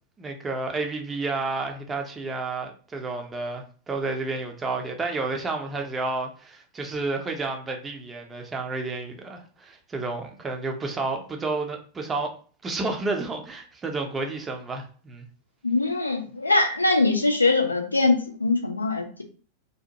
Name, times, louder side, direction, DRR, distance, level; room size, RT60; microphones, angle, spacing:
voice 1, 0.2-12.3 12.6-15.3, right 3 dB, 20° right, 0.5 m, -31 dB
voice 2, 15.6-19.2, left 3 dB, 80° left, 0.5 m, -22 dB
2.7 x 2.0 x 2.9 m
figure-of-eight pair, 90°, 0 cm